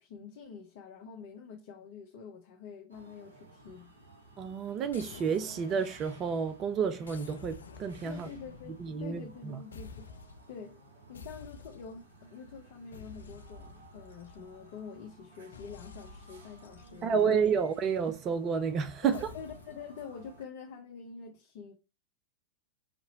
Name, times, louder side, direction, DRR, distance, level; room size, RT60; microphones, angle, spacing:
voice 1, 0.0-3.9 8.0-10.1 10.5-10.8 11.1-17.4 19.0-21.7, left 6 dB, 50° left, 0.7 m, -46 dB
sound 1, 2.9-20.4, right 2 dB, 70° right, 1.9 m, -56 dB
voice 2, 4.4-8.3 8.8-9.6 17.0-19.3, right 6 dB, 30° right, 0.4 m, -30 dB
sound 2, 4.9-6.5 7.0-9.4 9.7-10.6 11.1-12.2 12.9-14.8 15.5-17.9 19.1-19.9, left 4 dB, 70° left, 0.4 m, -51 dB
5.1 x 2.8 x 2.8 m
figure-of-eight pair, 90°, 0 cm